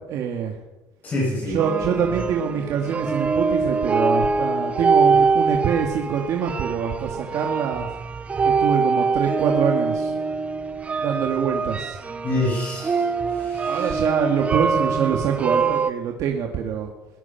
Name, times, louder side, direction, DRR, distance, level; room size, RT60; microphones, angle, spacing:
voice 1, 0.1-0.5 1.5-7.9 8.4-10.1 11.0-12.0 13.6-16.9, right 7 dB, 50° right, 2 dB, 2.2 m, -25 dB
voice 2, 1.0-1.6 12.2-14.0, left 2 dB, 25° left, -4 dB, 7.7 m, -27 dB
sound 1, 1.6-15.9, right 4 dB, 20° right, 0.8 m, -23 dB
22.5 x 19.5 x 6.0 m, 1.0 s
cardioid pair, 180°, 7 cm